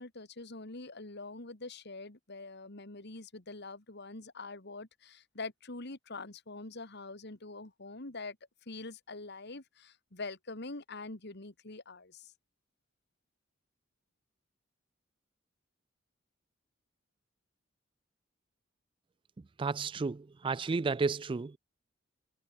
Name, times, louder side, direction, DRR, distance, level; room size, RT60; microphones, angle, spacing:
voice 1, 0.0-8.4 8.7-12.3, left 3 dB, 60° left, 2.4 m, -44 dB
voice 2, 19.6-21.5, right 4 dB, 25° right, 0.3 m, -32 dB
head